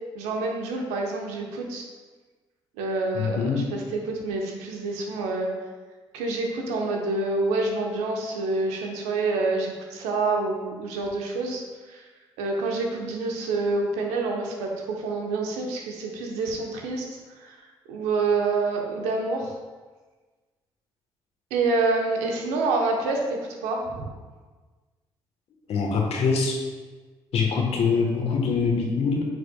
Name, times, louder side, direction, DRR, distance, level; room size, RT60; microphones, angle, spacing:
voice 1, 0.1-1.9 2.8-5.5 6.1-11.6 11.9-12.0 12.4-17.6 17.9-19.5 21.5-24.1, right 3 dB, 80° right, 1 dB, 0.9 m, -27 dB
voice 2, 3.1-3.6 25.7-26.6 27.3-29.3, left 5 dB, 65° left, 1 dB, 1.2 m, -24 dB
9.1 x 4.9 x 2.3 m, 1.4 s
hypercardioid pair, 50°, 11 cm